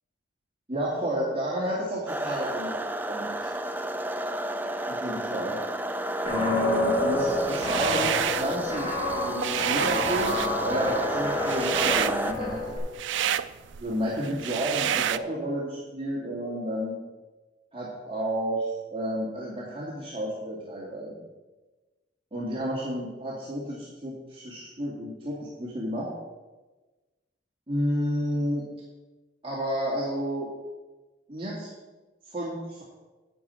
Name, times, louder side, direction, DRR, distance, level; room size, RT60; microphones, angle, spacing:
voice 1, 0.7-2.8 3.1-3.5 4.9-5.6 6.3-8.9 9.2-12.6 13.8-17.0 17.7-21.3 22.3-26.1 27.7-28.6 29.4-30.5 31.3-31.7 32.3-32.8, equal, 30° right, -6 dB, 2.0 m, -31 dB
sound 1, 2.1-12.3, right 1 dB, 10° right, 0.4 m, -32 dB
Guitar, 6.2-12.8, left 1 dB, 35° left, 3.3 m, -29 dB
sound 2, 7.4-8.6 9.0-15.2, right 10 dB, 75° right, 0.4 m, -29 dB
11.0 x 8.9 x 4.4 m, 1.2 s
head